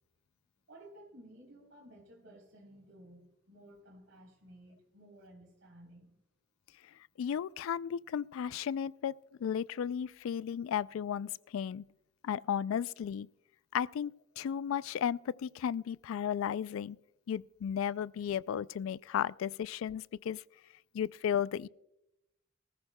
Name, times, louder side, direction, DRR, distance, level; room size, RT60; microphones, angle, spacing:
voice 1, 0.7-6.2, right 1 dB, 70° right, 3.6 m, -55 dB
voice 2, 7.2-9.1 9.4-11.9 12.2-13.3 13.7-17.0 17.3-20.4 20.9-21.7, left 8 dB, 85° left, 0.3 m, -34 dB
20.0 x 14.0 x 2.2 m
head